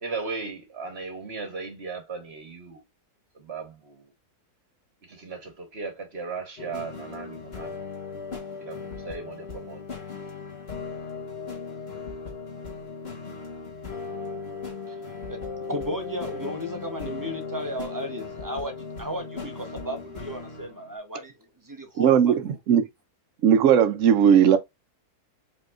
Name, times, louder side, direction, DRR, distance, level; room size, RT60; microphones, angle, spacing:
voice 1, 0.0-2.8 3.3-4.1 5.0-7.8 8.6-9.8, right 4 dB, 45° right, 1.3 m, -37 dB
sound 1, 6.6-20.9, left 4 dB, 40° left, 1.7 m, -37 dB
voice 2, 15.7-22.6, equal, 20° right, 0.6 m, -34 dB
voice 3, 22.0-22.9 23.4-24.6, right 8 dB, 60° right, 1.0 m, -18 dB
4.9 x 3.5 x 2.5 m
omnidirectional pair, 1.6 m